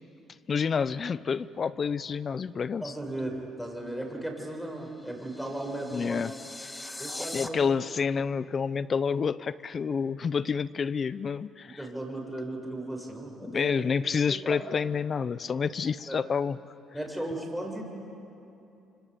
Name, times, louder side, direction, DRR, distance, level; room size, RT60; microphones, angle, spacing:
voice 1, 0.5-2.9 5.9-6.3 7.3-11.8 13.4-16.6, left 6 dB, 45° left, 17 dB, 0.6 m, -28 dB
voice 2, 2.8-6.2 7.0-7.6 11.8-13.9 14.3-14.6 16.1-16.2 16.9-17.8, right 1 dB, ahead, 0 dB, 6.9 m, -36 dB
sound 1, 4.8-7.5, left 2 dB, 15° left, 1.5 m, -41 dB
25.5 x 24.5 x 8.4 m, 2.8 s
supercardioid pair, 75°, 0 cm